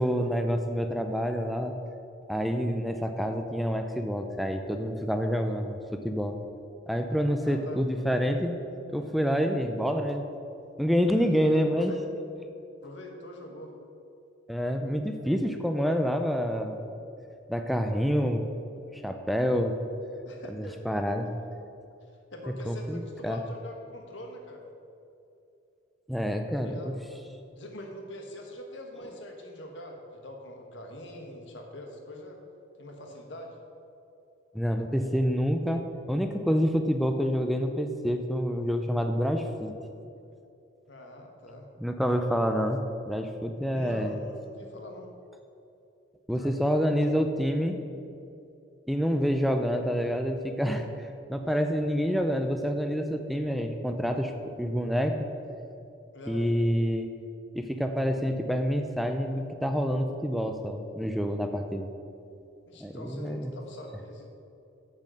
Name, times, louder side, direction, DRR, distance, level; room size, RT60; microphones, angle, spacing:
voice 1, 0.0-1.8 2.3-6.4 6.9-8.6 8.9-10.3 10.8-11.9 14.5-16.9 17.5-18.4 18.9-19.8 20.5-21.3 22.7-23.4 26.1-27.0 34.5-39.7 41.8-44.2 46.3-47.8 48.9-54.3 54.6-55.3 56.3-57.1 57.5-61.9 62.8-63.5, equal, ahead, 5 dB, 0.4 m, -27 dB
voice 2, 7.4-7.8 11.1-12.0 12.8-13.7 20.2-21.3 22.3-24.6 26.6-27.0 27.5-32.4 32.8-33.6 40.9-41.7 43.7-45.1 46.3-46.5 56.1-56.5 62.6-64.3, left 1 dB, 65° left, 2 dB, 1.3 m, -44 dB
7.8 x 7.2 x 6.2 m, 2.7 s
head